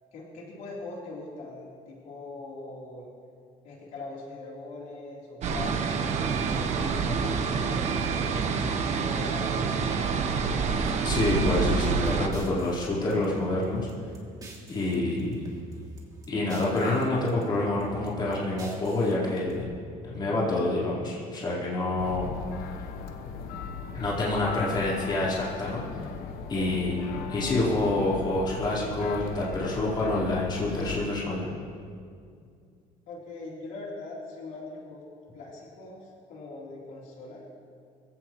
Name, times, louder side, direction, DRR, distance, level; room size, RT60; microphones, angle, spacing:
voice 1, 0.1-3.1 3.6-8.3 8.9-10.5 26.5-27.0 33.1-35.0 35.3-37.4, left 2 dB, 65° left, -5 dB, 3.7 m, -41 dB
sound 1, 5.4-12.3, right 5 dB, 50° right, 1.3 m, -27 dB
voice 2, 11.0-13.9 14.7-15.4 16.3-19.6 20.0-22.3 23.2-23.4 23.9-25.8 26.5-26.9 27.3-31.5, left 2 dB, 30° left, -7 dB, 4.4 m, -27 dB
sound 2, 11.3-14.9 15.2-17.0 17.3-19.6, right 1 dB, 25° right, 2.8 m, -46 dB
sound 3, 22.0-31.1, left 5 dB, 85° left, 1.2 m, -37 dB
24.0 x 16.5 x 3.2 m, 2.3 s
cardioid pair, 160°, 15 cm